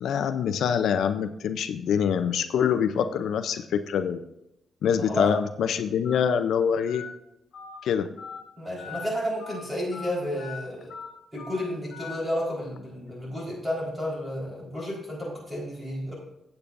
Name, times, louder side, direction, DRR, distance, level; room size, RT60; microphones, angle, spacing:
voice 1, 0.0-4.2 4.8-7.0 7.8-8.1, left 7 dB, 75° left, 10 dB, 0.5 m, -25 dB
voice 2, 5.0-5.3 8.6-10.9 11.3-16.1, equal, 10° right, -4 dB, 4.1 m, -31 dB
Telephone, 5.2-5.3 6.0-6.2 6.9-7.0 7.5-7.7 8.2-8.4 8.8-9.0 9.4-9.6 9.9-10.1 10.4-10.5 10.9-11.1 11.4-11.6 11.9-12.1, left 6 dB, 45° left, 3.9 m, -41 dB
15.5 x 8.3 x 2.6 m, 0.85 s
wide cardioid pair, 175°, 0 cm